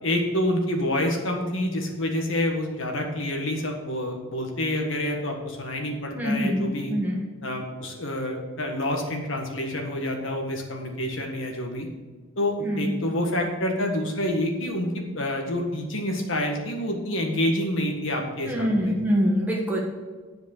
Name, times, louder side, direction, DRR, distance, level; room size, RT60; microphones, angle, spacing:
voice 1, 0.0-6.9 7.4-11.9 12.4-19.0, left 1 dB, 70° left, 2 dB, 1.6 m, -28 dB
voice 2, 6.1-7.2 12.6-12.9 18.4-19.8, equal, 10° right, -3 dB, 1.6 m, -24 dB
10.0 x 5.2 x 6.6 m, 1.4 s
head